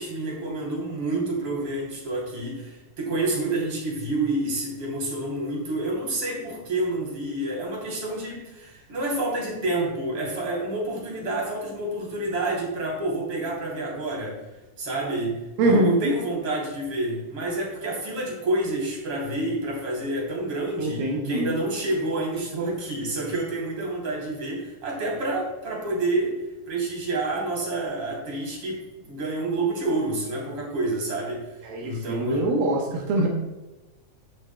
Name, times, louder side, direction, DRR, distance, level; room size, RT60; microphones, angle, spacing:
voice 1, 0.0-14.4 14.8-26.4 26.7-32.5, right 2 dB, 40° right, -3 dB, 3.8 m, -28 dB
voice 2, 15.6-16.2 20.8-21.5 31.6-33.3, right 1 dB, 80° right, -1 dB, 2.9 m, -23 dB
17.5 x 6.2 x 2.2 m, 1.1 s
omnidirectional pair, 4.2 m